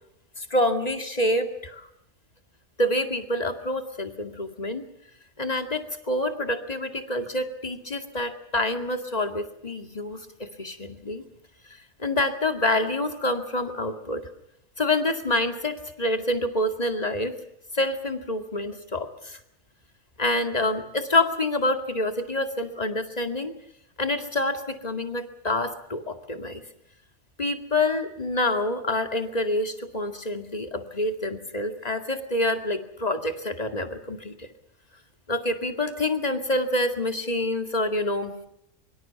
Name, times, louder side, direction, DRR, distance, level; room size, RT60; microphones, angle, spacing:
voice 1, 0.4-1.9 2.8-4.8 5.4-11.2 12.0-14.3 14.8-17.4 17.7-19.4 20.2-23.5 24.0-26.6 27.4-34.5 35.3-38.4, left 1 dB, 30° left, 7 dB, 2.2 m, -27 dB
24.5 x 24.0 x 5.9 m, 0.77 s
omnidirectional pair, 1.4 m